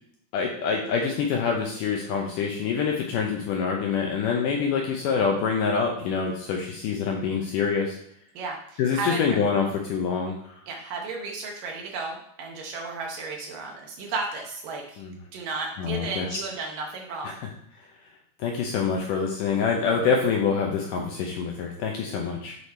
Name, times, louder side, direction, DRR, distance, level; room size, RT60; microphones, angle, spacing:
voice 1, 0.3-8.0 8.8-10.6 15.0-15.2 15.8-16.4 17.2-17.5 18.4-22.6, left 6 dB, 75° left, 1 dB, 2.0 m, -26 dB
voice 2, 8.4-9.2 10.7-15.0 15.3-17.4, right 3 dB, 70° right, 1 dB, 2.3 m, -33 dB
8.2 x 4.9 x 4.2 m, 0.69 s
omnidirectional pair, 4.6 m